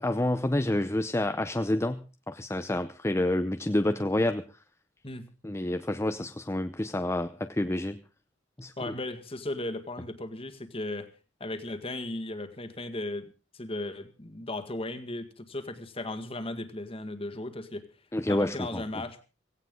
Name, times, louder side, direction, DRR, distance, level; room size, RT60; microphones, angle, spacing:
voice 1, 0.0-4.4 5.4-8.0 8.6-8.9 18.1-19.0, left 1 dB, 15° left, 9 dB, 0.7 m, -28 dB
voice 2, 8.8-11.1 11.4-13.3 13.5-17.8 18.3-19.2, left 2 dB, 30° left, 9 dB, 1.9 m, -36 dB
17.0 x 17.0 x 3.8 m, 0.34 s
head